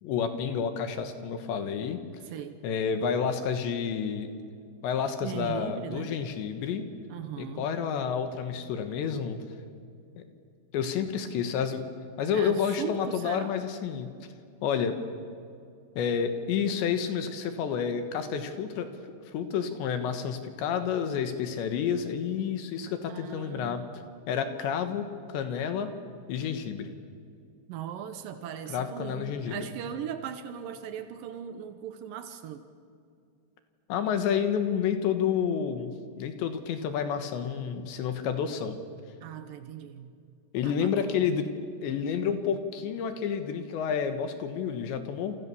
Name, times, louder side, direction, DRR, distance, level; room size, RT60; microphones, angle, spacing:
voice 1, 0.0-2.0 2.6-4.3 4.8-6.9 7.4-9.4 10.7-11.8 12.2-14.1 14.6-15.0 16.0-19.0 19.3-23.8 24.3-25.9 26.3-26.9 28.7-29.7 33.9-38.8 40.5-41.5 41.8-45.4, left 7 dB, 70° left, 8 dB, 3.5 m, -30 dB
voice 2, 2.2-2.6 5.2-6.2 7.1-7.7 12.3-13.6 23.1-24.1 27.7-32.6 39.2-40.1 40.6-41.4, right 9 dB, 90° right, 9 dB, 1.9 m, -39 dB
29.5 x 28.0 x 7.1 m, 2.4 s
omnidirectional pair, 5.6 m